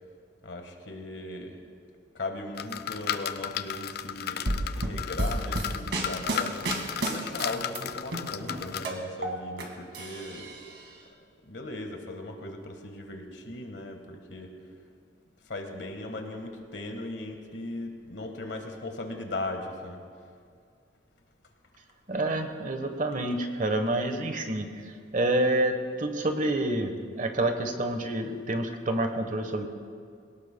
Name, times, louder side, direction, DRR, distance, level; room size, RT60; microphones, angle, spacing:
voice 1, 0.4-1.6 2.1-4.5 4.8-6.6 7.0-10.5 11.5-14.5 15.5-20.0, left 2 dB, 75° left, 4 dB, 1.6 m, -38 dB
sound 1, 2.6-8.9, left 9 dB, 55° left, 0.5 m, -35 dB
sound 2, 4.5-7.8 8.1-9.6 9.9-10.8, right 1 dB, 75° right, 2.0 m, -31 dB
voice 2, 22.1-24.7 25.1-29.7, right 1 dB, 45° right, 6 dB, 1.2 m, -28 dB
22.0 x 18.0 x 2.3 m, 2.2 s
head